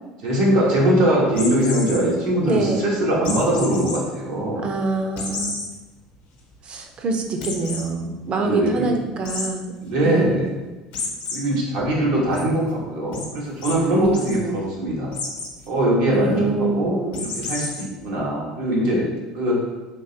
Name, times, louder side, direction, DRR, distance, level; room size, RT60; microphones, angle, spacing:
voice 1, 0.2-4.7 8.4-8.9 9.8-10.5 11.3-15.1 15.7-19.1 19.3-19.6, right 1 dB, 80° right, -4 dB, 1.1 m, -21 dB
sound 1, 1.3-2.0 3.2-4.0 4.4-4.5 5.2-5.7 6.1-6.2 6.5-6.6 7.4-7.8 9.2-9.5 10.9-11.4 11.8-12.4 13.1-13.3 13.6-13.7 14.0-14.3 15.1-15.5 17.1-17.8, left 4 dB, 80° left, 0.8 m, -30 dB
voice 2, 2.5-2.9 4.6-5.5 6.6-9.7 10.0-10.5 14.0-14.6 16.1-17.3, right 3 dB, 40° right, 4 dB, 0.5 m, -25 dB
3.8 x 2.9 x 2.7 m, 1.2 s
supercardioid pair, 95°, 3 cm